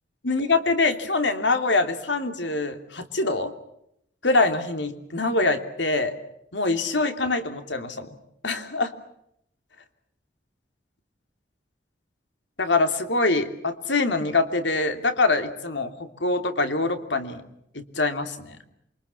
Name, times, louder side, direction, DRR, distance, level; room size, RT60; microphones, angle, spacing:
voice 1, 0.2-3.5 4.2-6.2 6.5-8.1 8.4-8.9 12.6-17.4 17.7-18.6, left 3 dB, 85° left, 8 dB, 3.0 m, -24 dB
28.0 x 24.5 x 7.1 m, 0.76 s
head